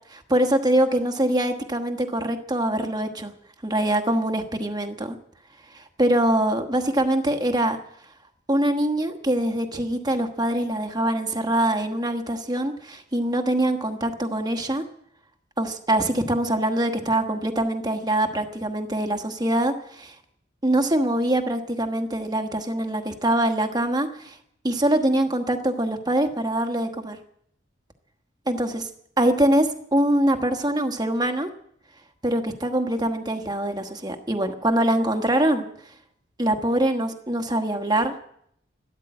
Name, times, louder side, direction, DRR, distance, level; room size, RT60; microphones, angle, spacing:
voice 1, 0.1-3.3 3.6-5.2 5.7-7.8 8.5-14.8 15.6-20.1 20.6-24.4 24.6-27.2 28.5-28.8 29.2-31.5 32.2-35.6 36.4-38.2, right 1 dB, 20° right, 6 dB, 1.3 m, -23 dB
13.0 x 12.5 x 8.8 m, 0.71 s
head